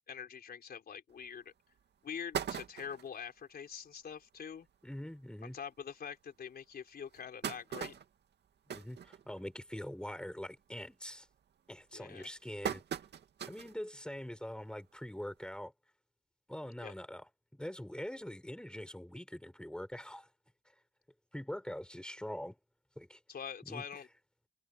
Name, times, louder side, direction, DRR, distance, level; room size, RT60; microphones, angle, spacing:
voice 1, 0.1-1.5 2.0-4.7 5.4-8.0 11.9-12.3 16.8-16.9 23.3-24.1, left 7 dB, 50° left, 4.0 m, -45 dB
sound 1, 1.2-1.3 1.8-1.9 2.1-3.2 3.7-3.8 4.1-4.2 4.5-4.7 5.4-5.5 6.0-6.1 6.9-9.7 10.1-10.4 10.8-11.2 11.8-13.8 14.2-14.3 15.5-15.6, right 8 dB, 60° right, 2.4 m, -41 dB
voice 2, 4.8-5.6 8.7-11.3 11.7-12.8 13.5-15.7 16.5-17.2 17.5-20.3 21.3-22.6 23.0-23.2 23.6-23.8, left 1 dB, 5° left, 6.2 m, -43 dB
cardioid pair, 90°, 20 cm